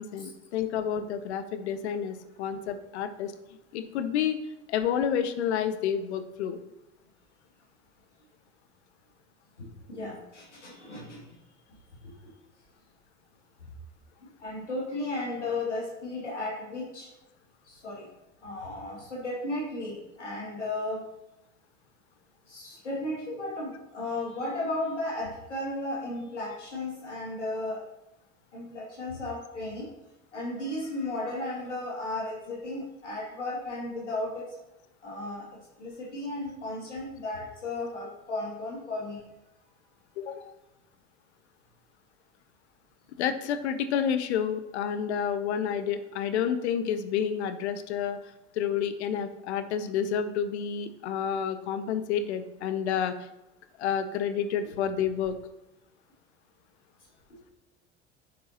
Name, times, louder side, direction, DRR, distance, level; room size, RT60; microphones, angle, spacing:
voice 1, 0.0-3.3 3.7-4.4 4.7-6.6 40.2-40.5 43.2-48.2 48.5-53.1 53.8-55.3, left 8 dB, 70° left, 10 dB, 0.8 m, -29 dB
voice 2, 9.6-11.3 12.0-12.3 14.4-17.1 17.6-18.1 18.4-21.0 22.5-27.8 28.5-29.9 30.3-34.5 35.0-39.3 57.3-57.4, left 2 dB, 85° left, -5 dB, 2.4 m, -35 dB
11.0 x 6.5 x 2.9 m, 0.94 s
figure-of-eight pair, 65°, 35 cm